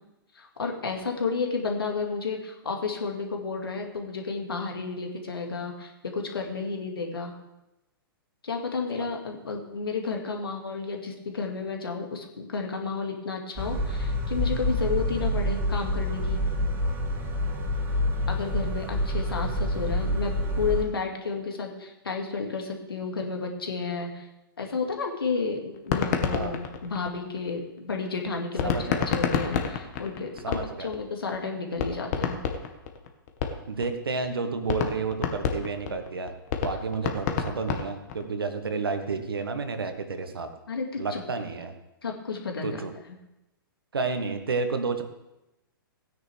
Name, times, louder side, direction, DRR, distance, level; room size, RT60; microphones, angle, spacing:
voice 1, 0.3-7.3 8.4-16.4 18.3-24.3 24.6-32.4 40.7-41.2 42.0-42.8 43.1-43.2, left 4 dB, 80° left, 2 dB, 2.2 m, -32 dB
sound 1, 13.6-20.8, equal, 20° right, 2.0 m, -27 dB
sound 2, 25.8-27.6 28.6-31.0 31.3-31.4 31.8-33.9 34.2-34.3 34.7-38.3, left 7 dB, 45° left, 1.4 m, -28 dB
voice 2, 28.6-29.0 30.4-30.9 33.7-36.3 36.6-40.5 41.0-41.7 42.6-42.9 43.9-45.0, right 4 dB, 80° right, 7 dB, 1.5 m, -31 dB
16.5 x 9.7 x 3.5 m, 0.95 s
figure-of-eight pair, 120°, 12 cm